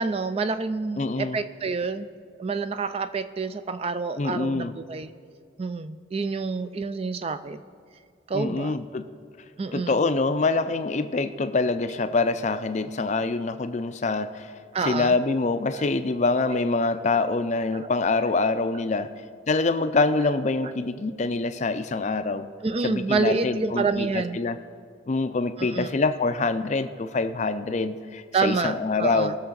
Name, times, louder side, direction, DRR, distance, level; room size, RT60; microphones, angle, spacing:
voice 1, 0.0-2.1 2.4-5.1 5.6-7.6 8.3-8.8 9.6-10.0 13.2-13.3 14.7-15.2 15.7-15.8 17.8-17.9 22.6-24.4 25.6-25.9 28.3-29.4, right 4 dB, 30° right, 11 dB, 0.3 m, -28 dB
voice 2, 1.0-1.4 4.2-4.7 8.3-9.1 9.7-14.5 14.9-19.1 19.5-22.5 22.8-24.6 25.1-29.4, left 3 dB, 35° left, 11 dB, 0.4 m, -25 dB
20.0 x 6.7 x 3.9 m, 2.3 s
head